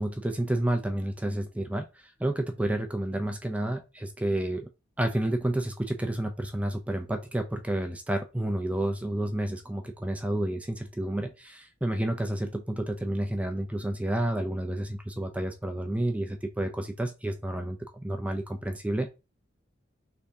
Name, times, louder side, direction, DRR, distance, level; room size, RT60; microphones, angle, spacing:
voice 1, 0.0-4.7 5.0-19.1, right 1 dB, 5° right, 5 dB, 0.4 m, -30 dB
3.5 x 3.4 x 2.7 m, 0.27 s
head